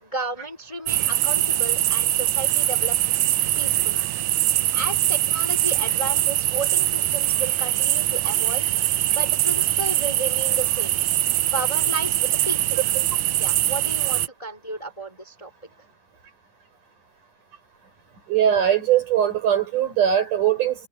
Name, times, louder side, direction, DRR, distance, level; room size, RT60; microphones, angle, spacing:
voice 1, 0.0-3.0 3.2-4.0 4.7-8.7 9.1-11.0 11.5-12.8 13.4-15.5, right 2 dB, 10° left, 3.4 m, -33 dB
sound 1, 0.9-14.3, right 15 dB, 90° right, 1.5 m, -22 dB
voice 2, 18.3-20.9, right 10 dB, 60° right, 6.8 m, -21 dB
omnidirectional pair, 4.1 m